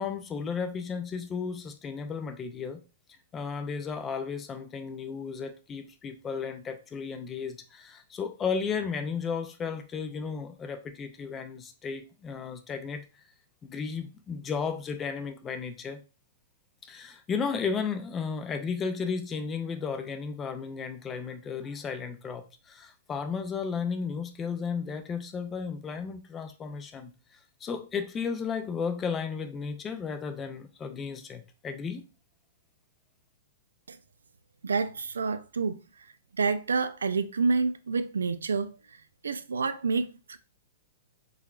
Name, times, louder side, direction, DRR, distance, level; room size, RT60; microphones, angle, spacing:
voice 1, 0.0-2.8 3.3-13.1 13.6-16.0 16.9-32.0, left 5 dB, 20° left, 0.5 m, -34 dB
voice 2, 34.6-40.4, right 4 dB, 90° right, 0.3 m, -29 dB
3.8 x 3.1 x 2.3 m
hypercardioid pair, 125°, 0 cm